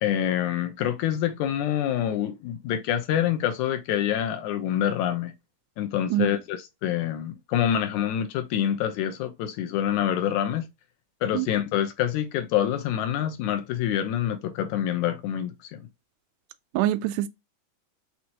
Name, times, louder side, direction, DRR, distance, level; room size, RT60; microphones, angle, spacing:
voice 1, 0.0-5.3 5.8-10.7 11.2-15.8, left 10 dB, 80° left, 2.1 m, -26 dB
voice 2, 16.7-17.3, right 13 dB, 90° right, 2.1 m, -24 dB
6.0 x 2.7 x 2.8 m
omnidirectional pair, 3.5 m